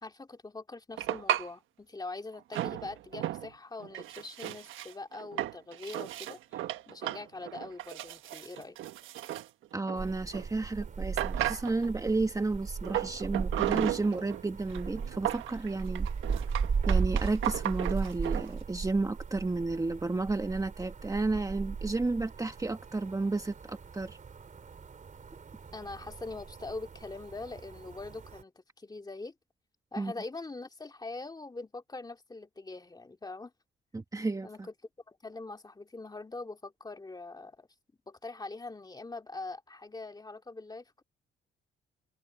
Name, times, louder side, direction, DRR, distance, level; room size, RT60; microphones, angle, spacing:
voice 1, 0.0-8.8 25.7-28.5 28.8-29.3 29.9-33.5 34.4-34.7 35.1-37.7 38.1-41.0, left 3 dB, 20° left, 2.4 m, -43 dB
sound 1, 0.9-1.5 2.5-3.5 3.8-10.5 10.8-10.9 11.2-12.0 12.8-14.4 14.7-18.5, right 13 dB, 85° right, 1.4 m, -35 dB
voice 2, 9.7-16.1 16.3-16.4 16.8-24.2 30.0-30.1 33.9-34.7, right 3 dB, 15° right, 1.4 m, -32 dB
sound 2, 10.0-28.4, right 5 dB, 40° right, 3.9 m, -37 dB
open air
cardioid pair, 90°, 20 cm